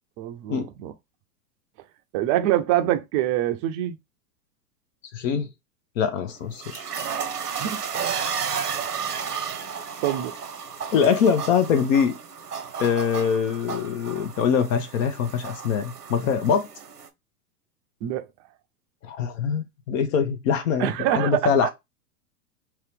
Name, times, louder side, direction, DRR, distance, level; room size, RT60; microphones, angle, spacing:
voice 1, 0.2-0.9 2.1-4.0 7.6-8.0 10.0-10.3 18.0-18.3 20.8-21.7, right 12 dB, 30° right, 0.5 m, -25 dB
voice 2, 5.1-5.5 6.0-6.8 10.9-12.1 12.8-16.7 19.0-21.7, left 7 dB, 60° left, 0.8 m, -23 dB
sound 1, 6.3-17.1, right 7 dB, 90° right, 0.8 m, -33 dB
3.0 x 2.9 x 3.3 m
hypercardioid pair, 100°, 46 cm